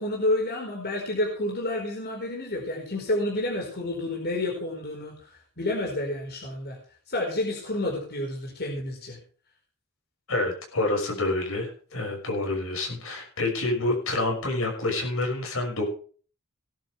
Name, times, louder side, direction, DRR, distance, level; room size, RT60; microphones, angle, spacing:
voice 1, 0.0-5.1 5.6-6.8 7.1-9.2, left 1 dB, 50° left, -2 dB, 4.8 m, -29 dB
voice 2, 10.3-15.8, left 2 dB, 70° left, 2 dB, 6.1 m, -28 dB
18.5 x 11.5 x 3.5 m, 0.42 s
head